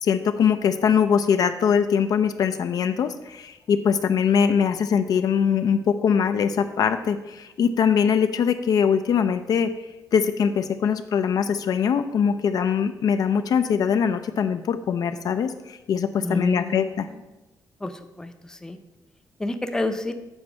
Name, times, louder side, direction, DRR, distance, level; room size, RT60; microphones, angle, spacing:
voice 1, 0.0-9.8 10.1-17.1, left 7 dB, 60° left, 9 dB, 0.4 m, -22 dB
voice 2, 16.2-17.2 17.8-18.8 19.4-20.1, left 2 dB, 10° left, 7 dB, 0.5 m, -30 dB
7.8 x 4.2 x 6.0 m, 1.0 s
cardioid pair, 135°, 7 cm